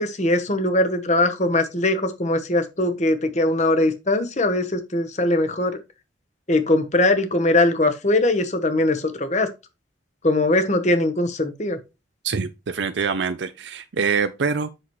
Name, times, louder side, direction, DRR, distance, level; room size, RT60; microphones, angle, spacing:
voice 1, 0.0-5.8 6.5-9.5 10.2-11.8, left 2 dB, 40° left, 1.1 m, -21 dB
voice 2, 12.2-14.8, right 5 dB, 65° right, 0.5 m, -25 dB
7.9 x 6.0 x 3.1 m
head